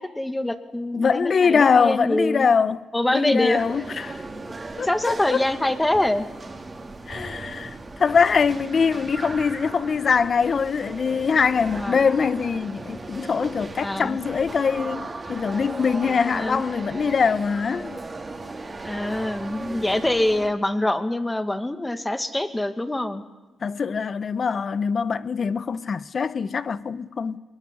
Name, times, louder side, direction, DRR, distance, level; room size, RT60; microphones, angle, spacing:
voice 1, 0.0-2.5 2.9-3.6 4.8-6.3 11.8-12.0 13.8-14.2 16.3-16.6 18.8-23.2, left 1 dB, 15° left, 2.2 m, -25 dB
voice 2, 0.9-2.8 3.1-4.2 4.8-5.4 7.1-18.0 23.6-27.4, left 5 dB, 50° left, 1.0 m, -23 dB
sound 1, 3.6-20.5, right 3 dB, 30° right, 3.5 m, -37 dB
24.0 x 21.0 x 10.0 m
cardioid pair, 80°, 0 cm